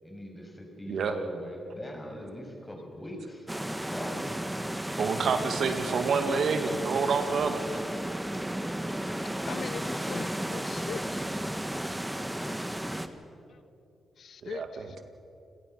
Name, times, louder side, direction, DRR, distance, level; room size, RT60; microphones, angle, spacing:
voice 1, 0.0-3.5 3.9-4.2, left 1 dB, 15° left, 2 dB, 6.7 m, -41 dB
voice 2, 0.9-1.2 5.0-7.8 14.4-15.0, right 5 dB, 70° right, 7 dB, 1.9 m, -28 dB
sound 1, 3.5-13.1, right 1 dB, 10° right, 1.6 m, -33 dB
voice 3, 9.4-11.3 14.2-15.0, left 6 dB, 65° left, 15 dB, 0.6 m, -40 dB
29.5 x 17.5 x 6.9 m, 2.6 s
cardioid pair, 60°, 0 cm